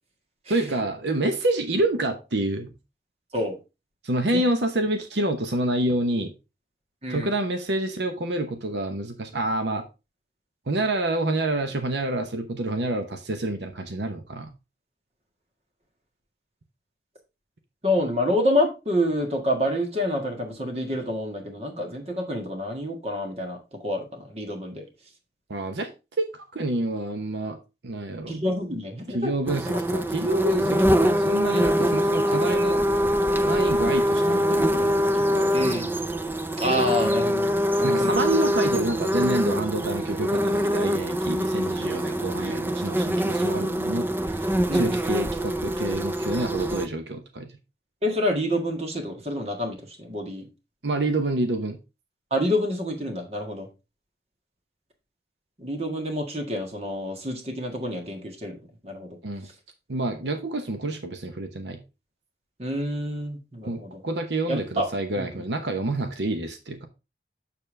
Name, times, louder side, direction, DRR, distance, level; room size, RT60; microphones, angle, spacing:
voice 1, 0.5-2.7 4.0-6.3 7.1-9.8 10.7-14.5 25.5-25.9 26.3-27.6 27.8-28.3 29.1-32.8 33.4-35.7 37.8-47.5 50.8-51.8 59.2-59.5 59.9-61.8 63.6-66.9, right 2 dB, 80° right, 0.9 m, -28 dB
voice 2, 17.8-24.8 28.3-29.3 29.7-29.8 35.5-35.8 36.6-37.5 37.8-38.1 44.7-45.0 48.0-50.5 52.3-53.7 55.6-59.2 62.6-64.0 64.5-64.9 65.2-65.3, left 1 dB, 35° right, 1.7 m, -28 dB
sound 1, 29.5-46.9, equal, 10° right, 0.4 m, -24 dB
6.9 x 6.8 x 3.3 m
head